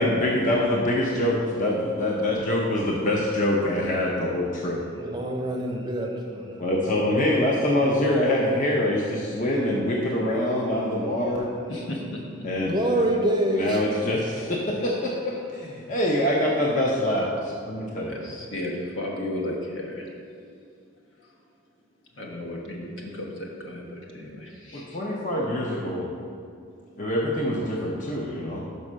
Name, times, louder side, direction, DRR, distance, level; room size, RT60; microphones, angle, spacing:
voice 1, 0.0-4.8 6.6-11.5 12.4-12.7 13.5-18.2 24.7-26.1 27.0-28.6, left 1 dB, 40° left, -2 dB, 0.6 m, -25 dB
voice 2, 5.0-6.5 12.7-13.8, right 1 dB, 20° right, 0 dB, 0.6 m, -25 dB
voice 3, 11.7-12.5 18.0-20.1 22.2-25.0, left 1 dB, 75° left, -2 dB, 1.3 m, -34 dB
5.4 x 5.3 x 6.1 m, 2.4 s
head